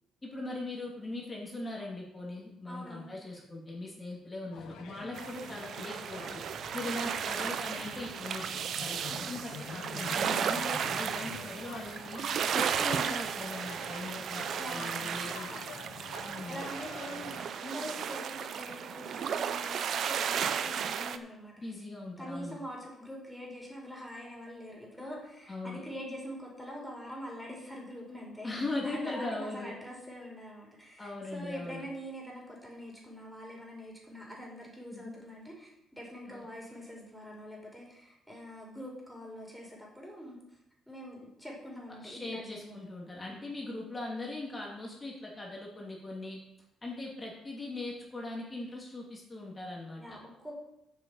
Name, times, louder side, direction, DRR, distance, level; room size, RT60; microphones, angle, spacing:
voice 1, 0.2-6.4 6.7-8.5 8.8-12.2 12.5-15.5 16.2-16.7 21.6-22.6 25.5-25.8 28.4-29.7 31.0-31.9 34.9-35.1 36.3-36.4 42.0-46.4 46.8-50.2, left 2 dB, 25° left, -2 dB, 2.7 m, -40 dB
voice 2, 2.7-3.1 5.0-5.2 6.7-7.1 14.6-15.2 15.5-15.6 16.4-21.5 22.2-40.4 40.9-42.9 43.2-43.3 50.0-50.6, equal, ahead, -2 dB, 4.7 m, -44 dB
sound 1, 4.5-17.4, left 5 dB, 90° left, 1.5 m, -47 dB
sound 2, 5.1-21.2, right 8 dB, 65° right, 0.7 m, -34 dB
8.0 x 7.0 x 7.0 m, 0.82 s
cardioid pair, 90°, 0 cm